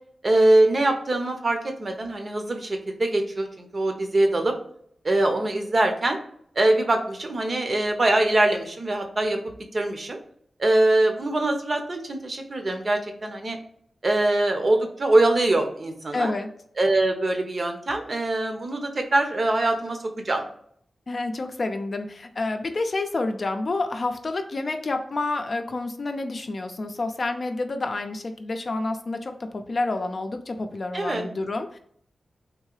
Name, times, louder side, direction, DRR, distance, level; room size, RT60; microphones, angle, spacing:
voice 1, 0.2-4.5 5.0-6.2 6.6-9.4 9.7-10.2 10.6-13.6 14.0-16.3 16.8-20.0 20.2-20.4 30.9-31.2, right 2 dB, 45° right, 4 dB, 0.8 m, -23 dB
voice 2, 16.1-16.5 21.1-31.8, left 2 dB, 50° left, 6 dB, 0.5 m, -29 dB
3.7 x 2.7 x 3.1 m, 0.64 s
wide cardioid pair, 85°, 0 cm